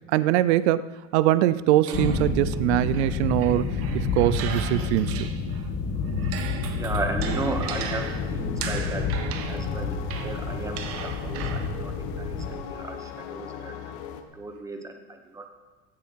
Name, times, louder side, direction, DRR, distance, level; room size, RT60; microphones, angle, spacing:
voice 1, 0.1-5.3, right 15 dB, 80° right, 0.6 m, -23 dB
sound 1, 1.8-5.7 6.0-11.9, right 8 dB, 45° right, 1.3 m, -38 dB
sound 2, 1.9-12.5, left 4 dB, 45° left, 2.1 m, -29 dB
voice 2, 6.7-8.0 8.3-9.1 9.5-13.9 14.3-15.5, right 2 dB, 10° right, 1.1 m, -35 dB
sound 3, 7.2-14.2, left 9 dB, 60° left, 1.5 m, -38 dB
16.5 x 10.5 x 4.6 m
supercardioid pair, 155°, 33 cm